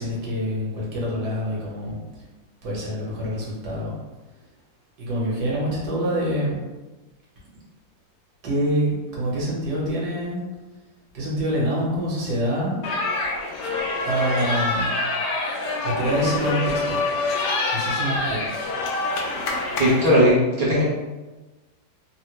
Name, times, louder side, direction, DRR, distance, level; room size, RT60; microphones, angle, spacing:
voice 1, 0.0-2.0 2.6-4.0 5.0-6.6 8.4-10.4 11.1-12.8 14.0-14.9 15.8-16.6 16.9-17.0 17.7-18.4, equal, 60° right, -5 dB, 1.5 m, -26 dB
sound 1, 12.8-20.1, left 3 dB, 75° left, 1.1 m, -26 dB
voice 2, 19.8-20.8, equal, 80° right, -7 dB, 0.4 m, -18 dB
3.6 x 2.1 x 3.0 m, 1.1 s
omnidirectional pair, 2.1 m